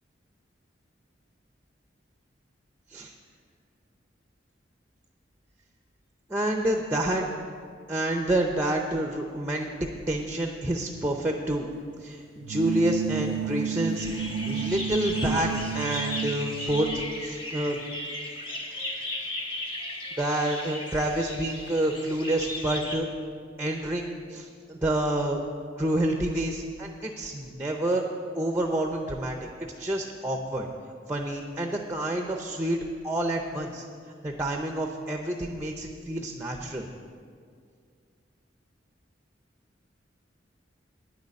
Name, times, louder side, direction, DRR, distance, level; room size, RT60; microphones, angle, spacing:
voice 1, 6.3-7.3 7.9-9.7 10.1-11.7 12.0-14.2 14.5-17.8 20.2-23.1 23.6-25.4 25.8-28.0 28.4-30.7 31.1-32.8 33.0-33.8 34.2-36.9, right 1 dB, 10° right, 3 dB, 0.6 m, -28 dB
sound 1, 12.4-17.2, right 6 dB, 75° right, 0.3 m, -31 dB
sound 2, 13.9-23.0, left 1 dB, 30° left, 1.4 m, -36 dB
9.9 x 6.6 x 8.5 m, 2.1 s
head